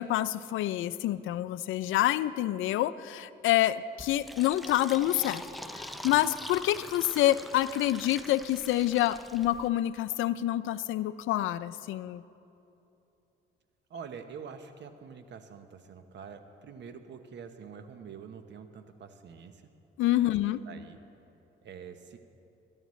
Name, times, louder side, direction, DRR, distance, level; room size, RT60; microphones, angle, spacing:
voice 1, 0.0-5.5 5.7-12.2 20.0-20.6, left 14 dB, 80° left, 15 dB, 0.5 m, -27 dB
Fill (with liquid), 4.0-9.7, equal, ahead, 0.6 m, -44 dB
voice 2, 13.9-19.7 20.2-21.0 21.6-22.2, right 6 dB, 65° right, 8 dB, 1.0 m, -46 dB
24.5 x 11.0 x 3.2 m, 2.8 s
cardioid pair, 90°, 20 cm